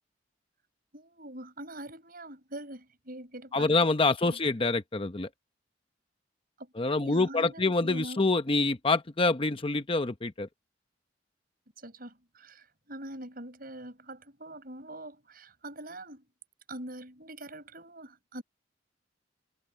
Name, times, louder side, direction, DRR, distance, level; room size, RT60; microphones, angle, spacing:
voice 1, 0.9-3.9 4.2-4.4 6.6-8.4 11.8-16.2 16.7-18.4, right 1 dB, 55° right, 7.9 m, -44 dB
voice 2, 3.5-5.3 6.8-10.5, left 3 dB, 30° left, 0.8 m, -26 dB
head